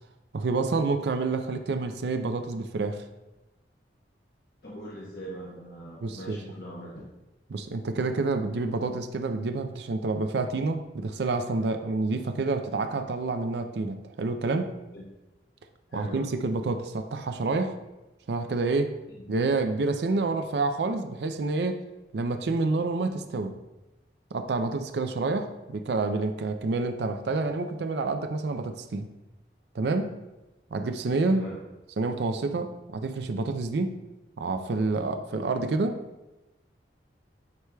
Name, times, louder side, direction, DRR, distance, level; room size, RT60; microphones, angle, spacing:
voice 1, 0.3-3.0 6.0-6.4 7.5-14.7 15.9-17.8 18.3-18.9 19.3-21.8 22.1-23.6 24.3-29.1 29.7-30.2 30.7-31.5 32.0-34.0 34.4-36.0, right 3 dB, 75° right, 7 dB, 0.4 m, -28 dB
voice 2, 4.6-7.1 14.9-15.0 15.9-16.3 19.1-19.2 31.3-31.6, right 1 dB, 60° left, -5 dB, 1.0 m, -41 dB
9.6 x 4.6 x 2.3 m, 1.0 s
head